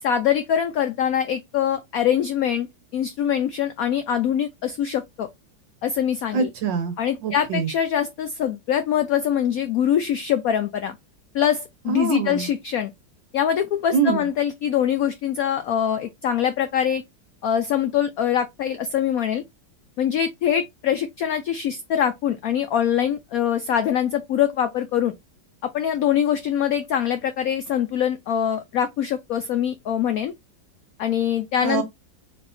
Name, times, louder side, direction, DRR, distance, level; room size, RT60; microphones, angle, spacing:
voice 1, 0.0-2.7 2.9-5.3 5.8-6.5 7.0-10.9 11.3-12.9 13.3-17.0 17.4-19.4 20.0-25.1 25.6-30.3 31.0-31.8, left 9 dB, 80° left, 0.8 m, -23 dB
voice 2, 6.3-7.0 7.2-7.7 11.9-12.5 13.9-14.3 31.6-31.8, right 5 dB, 70° right, 1.8 m, -24 dB
4.3 x 2.8 x 4.2 m
omnidirectional pair, 2.1 m